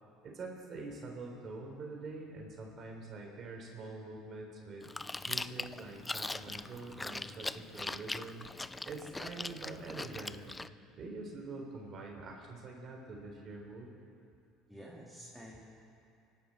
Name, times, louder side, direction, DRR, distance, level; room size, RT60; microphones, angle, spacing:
voice 1, 0.2-8.5 8.8-10.7 11.0-13.9, right 3 dB, 45° right, 1 dB, 3.7 m, -45 dB
Chewing mastication, 4.8-10.7, left 2 dB, 15° left, 0.4 m, -41 dB
voice 2, 14.7-15.6, equal, 5° right, -6 dB, 3.0 m, -50 dB
25.0 x 12.0 x 4.4 m, 2.6 s
hypercardioid pair, 70°, 0 cm